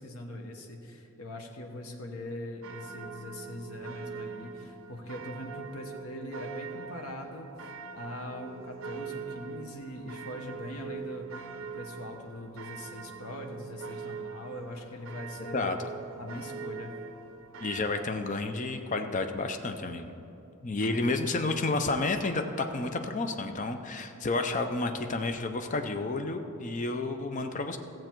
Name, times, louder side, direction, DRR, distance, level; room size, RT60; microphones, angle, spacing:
voice 1, 0.0-11.3 11.6-15.8 16.2-16.9 20.8-21.1, left 1 dB, 75° left, 3 dB, 1.1 m, -41 dB
sound 1, 2.6-18.0, right 5 dB, 60° right, 0.7 m, -43 dB
voice 2, 17.6-20.1 20.6-27.8, left 3 dB, 35° left, 6 dB, 0.5 m, -31 dB
15.0 x 7.7 x 4.5 m, 2.8 s
head